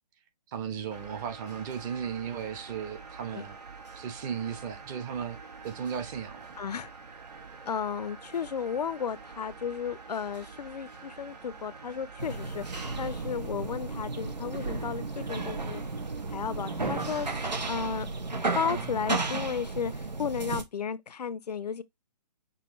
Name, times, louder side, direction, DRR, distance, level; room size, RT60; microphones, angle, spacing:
voice 1, 0.5-3.6 3.9-6.5 18.6-18.9, right 7 dB, 30° right, 1.0 m, -36 dB
Mechanisms, 0.9-18.9, right 5 dB, 75° right, 1.9 m, -46 dB
voice 2, 6.6-6.9 7.7-12.6 13.0-15.8 16.3-17.4 17.7-18.1 18.6-21.8, left 7 dB, 70° left, 0.5 m, -34 dB
sound 1, 8.9-17.9, right 4 dB, 50° right, 2.9 m, -52 dB
sound 2, 12.2-20.6, right 3 dB, 90° right, 1.0 m, -33 dB
6.1 x 2.7 x 3.0 m
figure-of-eight pair, 135°, 21 cm